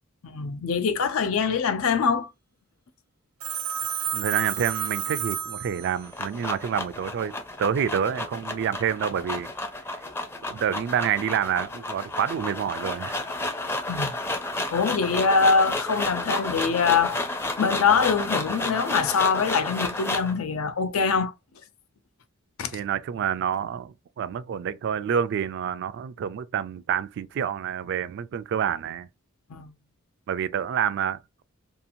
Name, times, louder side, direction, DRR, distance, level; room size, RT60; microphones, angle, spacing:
voice 1, 0.2-2.3 13.9-14.1 14.7-17.2 17.6-21.3 22.6-22.8 29.5-29.7, left 5 dB, 80° left, 0.5 m, -23 dB
Telephone, 3.4-6.2, right 8 dB, 85° right, 0.7 m, -31 dB
voice 2, 4.1-7.3 7.6-9.5 10.5-13.2 22.7-29.1 30.3-31.4, right 8 dB, 55° right, 0.3 m, -28 dB
sound 1, 5.8-20.4, left 2 dB, 10° left, 0.4 m, -31 dB
2.8 x 2.4 x 2.6 m
head